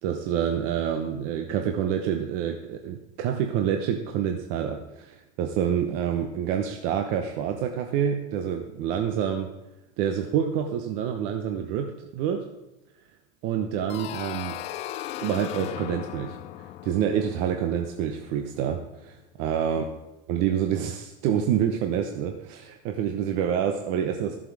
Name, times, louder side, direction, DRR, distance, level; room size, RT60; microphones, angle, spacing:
voice 1, 0.0-9.5 10.0-12.5 13.4-14.6 15.2-19.8 20.3-24.4, right 9 dB, 50° right, 5 dB, 0.9 m, -27 dB
sound 1, 13.9-18.6, left 13 dB, 40° left, 0.5 m, -37 dB
13.5 x 7.4 x 4.8 m, 0.95 s
supercardioid pair, 145°, 18 cm